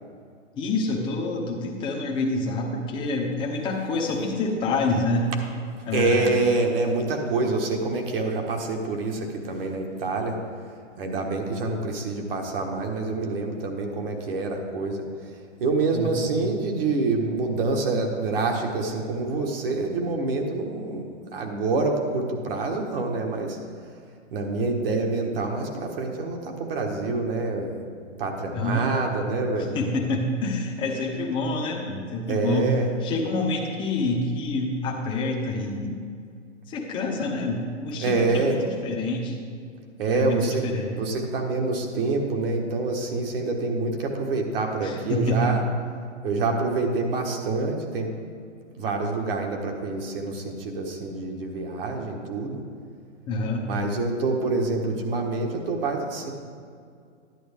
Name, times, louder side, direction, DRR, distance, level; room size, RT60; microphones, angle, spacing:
voice 1, 0.6-5.3 5.8-6.4 15.9-16.3 28.5-28.9 29.7-32.7 33.0-36.0 36.7-39.4 40.1-40.9 44.8-45.5 53.3-53.7, left 2 dB, 15° left, 0 dB, 0.8 m, -27 dB
voice 2, 5.8-10.4 11.0-23.6 24.3-27.8 28.2-29.8 32.3-32.9 38.0-38.6 40.0-40.6 40.9-45.6 46.2-48.1 48.8-52.6 53.6-56.3, right 3 dB, 50° right, 2 dB, 1.5 m, -26 dB
11.0 x 9.2 x 3.5 m, 2.3 s
hypercardioid pair, 150°, 37 cm